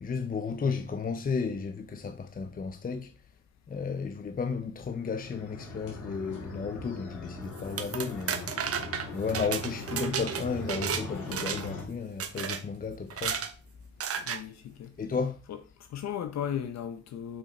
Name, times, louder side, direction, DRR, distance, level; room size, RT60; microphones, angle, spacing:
voice 1, 0.0-3.1 3.7-8.5 9.1-13.4 15.0-15.4, left 5 dB, 30° left, 0.7 m, -33 dB
sound 1, 4.9-11.8, left 3 dB, 80° left, 3.6 m, -41 dB
sound 2, 7.6-11.0 11.3-11.8 12.2-12.6 13.1-13.5 14.0-14.4, right 7 dB, 50° right, 1.2 m, -33 dB
voice 2, 14.2-14.9 15.5-17.4, left 9 dB, 60° left, 0.8 m, -36 dB
6.8 x 5.8 x 4.3 m
cardioid pair, 90°, 30 cm